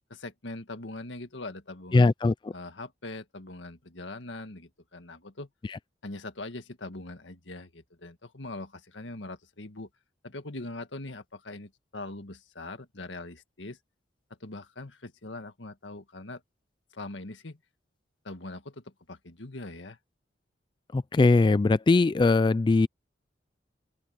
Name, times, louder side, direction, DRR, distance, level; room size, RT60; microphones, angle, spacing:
voice 1, 0.1-2.1 2.5-5.5 6.0-9.9 10.2-13.8 14.4-16.4 16.9-17.6 18.2-20.0, left 2 dB, 90° left, 1.8 m, -41 dB
voice 2, 1.9-2.5 5.7-5.8 20.9-22.9, left 3 dB, 25° left, 0.3 m, -21 dB
open air
head